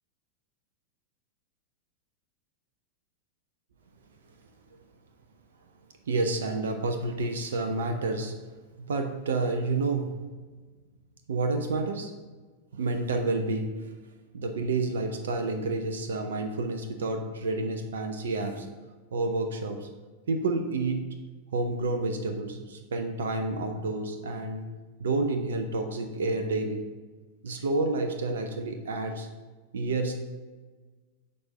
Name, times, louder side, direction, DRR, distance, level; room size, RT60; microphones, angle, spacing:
voice 1, 6.1-8.3 8.8-10.1 11.3-12.1 12.7-13.9 14.3-18.7 19.1-19.9 20.3-21.0 21.5-24.6 25.0-26.8 27.4-29.3 29.7-30.2, right 3 dB, 65° right, 5 dB, 0.6 m, -29 dB
6.6 x 4.2 x 5.2 m, 1.3 s
figure-of-eight pair, 90°, 0 cm